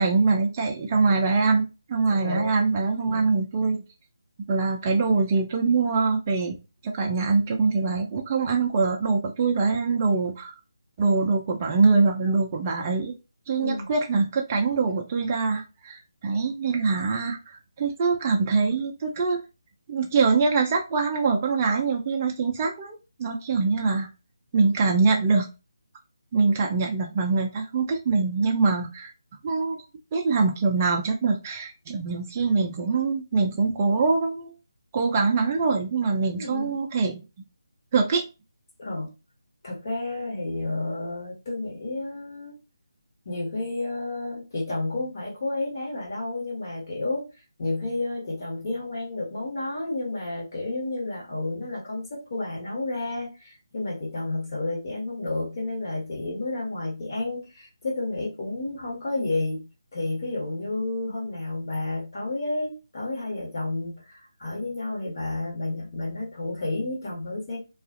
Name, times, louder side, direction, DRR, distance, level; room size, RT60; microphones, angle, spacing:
voice 1, 0.0-3.8 4.5-6.6 6.8-10.5 11.0-13.1 13.5-19.4 19.9-24.1 24.5-25.5 26.3-29.1 29.4-29.8 30.1-34.5 34.9-37.2 37.9-38.2, right 4 dB, 25° right, 1 dB, 0.4 m, -23 dB
voice 2, 2.1-2.5 3.0-3.3 13.6-13.9 36.3-36.8 38.8-39.1 39.6-42.6 43.2-47.2 47.6-59.7 59.9-67.6, left 2 dB, 45° left, -3 dB, 1.4 m, -31 dB
2.4 x 2.4 x 2.5 m, 0.29 s
figure-of-eight pair, 160°, 2 cm